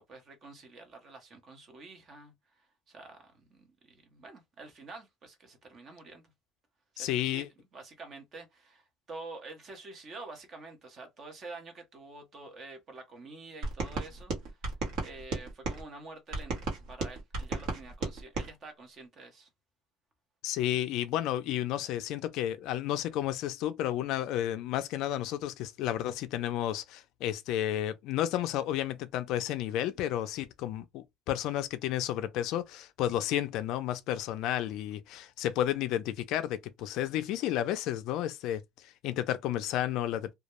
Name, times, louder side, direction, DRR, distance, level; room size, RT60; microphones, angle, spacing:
voice 1, 0.0-6.2 6.9-7.5 7.7-14.6 15.0-19.5, right 3 dB, 30° right, 0.7 m, -48 dB
voice 2, 7.0-7.5 20.4-40.3, left 12 dB, 60° left, 0.3 m, -32 dB
sound 1, 13.6-15.8 16.3-18.5, right 3 dB, 65° right, 0.9 m, -35 dB
2.2 x 2.0 x 2.9 m
cardioid pair, 175°, 0 cm